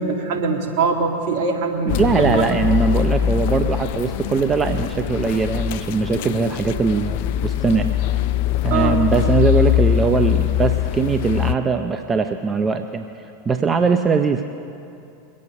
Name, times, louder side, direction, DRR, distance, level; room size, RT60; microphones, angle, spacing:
voice 1, 0.0-2.4 2.8-2.9 8.7-9.0, right 4 dB, 60° right, 2 dB, 1.9 m, -22 dB
sound 1, 1.9-11.6, left 11 dB, 60° left, 0.4 m, -22 dB
voice 2, 1.9-7.9 8.6-13.0 13.5-14.4, right 4 dB, 25° right, 7 dB, 0.7 m, -21 dB
22.5 x 8.6 x 5.4 m, 2.6 s
hypercardioid pair, 85°, 0 cm